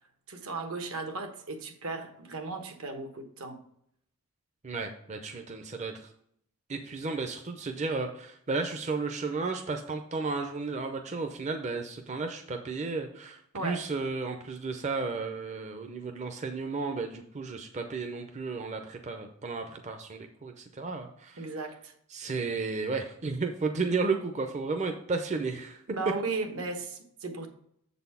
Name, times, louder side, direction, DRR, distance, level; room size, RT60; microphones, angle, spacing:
voice 1, 0.3-3.6 13.5-13.9 21.3-21.9 25.9-27.5, right 3 dB, 75° right, 6 dB, 1.2 m, -36 dB
voice 2, 4.6-6.1 6.7-21.5 22.1-25.8, right 4 dB, 30° right, 4 dB, 0.5 m, -33 dB
7.3 x 4.1 x 5.5 m, 0.68 s
head